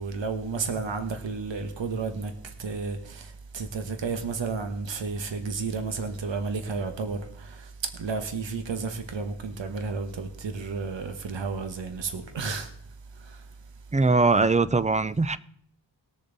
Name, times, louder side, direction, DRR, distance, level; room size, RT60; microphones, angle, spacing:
voice 1, 0.0-12.7 13.1-13.4, right 4 dB, 70° right, 1.3 m, -32 dB
voice 2, 13.9-15.4, right 3 dB, 15° right, 0.4 m, -21 dB
20.0 x 7.0 x 4.0 m
wide cardioid pair, 105°, 46 cm